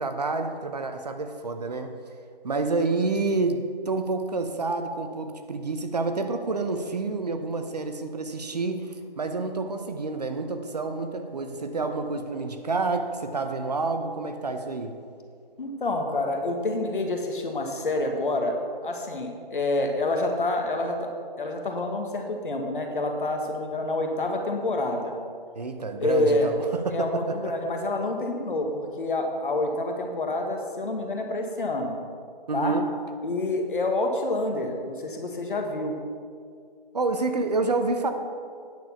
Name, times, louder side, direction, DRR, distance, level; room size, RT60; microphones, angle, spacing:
voice 1, 0.0-1.9 2.4-15.0 25.5-27.5 32.5-32.9 36.9-38.1, right 3 dB, 45° right, 7 dB, 0.7 m, -28 dB
voice 2, 15.6-18.5 18.8-21.1 21.4-25.1 26.0-26.5 26.9-31.9 32.5-32.7 33.2-36.0, left 2 dB, 60° left, 3 dB, 1.5 m, -27 dB
9.3 x 6.8 x 5.6 m, 2.2 s
hypercardioid pair, 170°, 29 cm